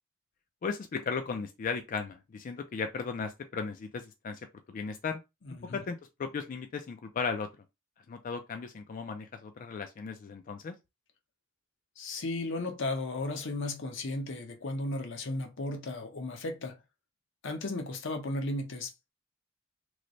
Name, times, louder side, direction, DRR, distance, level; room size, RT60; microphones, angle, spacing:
voice 1, 0.6-4.4 4.7-5.2 5.7-7.5 8.1-10.8, left 5 dB, 40° left, 0.3 m, -36 dB
voice 2, 5.4-5.8 12.0-16.8 17.4-19.1, left 2 dB, 65° left, 0.8 m, -35 dB
3.1 x 2.0 x 3.9 m
head